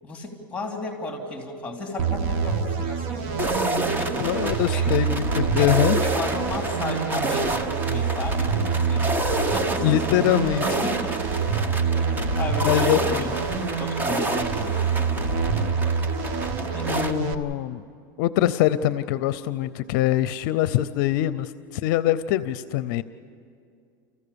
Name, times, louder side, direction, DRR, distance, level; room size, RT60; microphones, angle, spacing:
voice 1, 0.0-3.4 3.9-4.9 5.6-5.7 6.0-9.1 9.5-11.2 11.5-11.6 11.9-14.9 16.7-17.0 20.4-20.5, left 2 dB, 10° left, 2 dB, 2.8 m, -34 dB
sound 1, 2.0-17.3, right 5 dB, 55° right, 1.3 m, -26 dB
sound 2, 3.4-17.1, right 2 dB, 15° right, 1.0 m, -29 dB
voice 2, 4.2-6.0 9.8-10.6 12.6-13.3 16.9-17.8 18.2-23.0, left 13 dB, 65° left, 15 dB, 0.5 m, -23 dB
29.0 x 15.0 x 6.9 m, 2.3 s
supercardioid pair, 135°, 11 cm